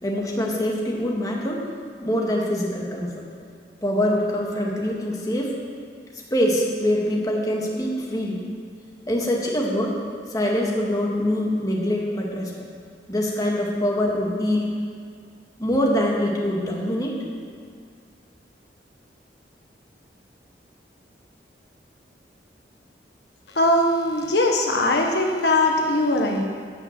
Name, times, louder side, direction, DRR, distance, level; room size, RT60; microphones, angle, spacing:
voice 1, 0.0-1.6 2.0-3.2 3.8-5.5 6.1-8.4 9.1-9.9 10.3-12.5 13.1-14.7 15.6-17.2, left 1 dB, 20° left, -2 dB, 1.8 m, -24 dB
voice 2, 23.5-26.4, left 1 dB, 70° left, 2 dB, 1.2 m, -20 dB
13.5 x 5.9 x 8.7 m, 2.1 s
head